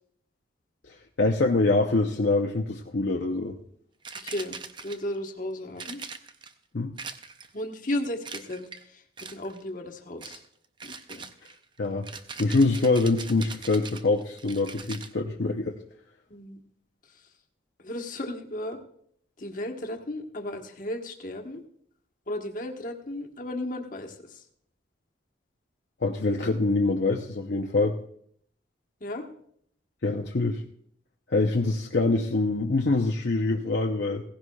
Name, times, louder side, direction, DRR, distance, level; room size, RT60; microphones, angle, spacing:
voice 1, 0.9-3.6 6.7-6.9 11.8-12.1 12.4-15.8 26.0-27.9 30.0-30.6 31.3-34.2, left 3 dB, 65° left, 1 dB, 0.7 m, -25 dB
sound 1, 4.0-5.2 5.8-6.5 7.0-7.6 8.2-8.8 9.2-9.6 10.2-10.5 10.8-15.1, right 5 dB, 25° right, 0.5 m, -41 dB
voice 2, 4.2-4.6 4.8-6.0 7.5-9.0 9.3-10.4 10.8-11.2 16.3-16.6 17.8-18.8 19.4-21.6 22.3-24.1 29.0-29.3, left 1 dB, 45° left, 4 dB, 1.2 m, -34 dB
16.5 x 15.5 x 2.3 m, 0.66 s
head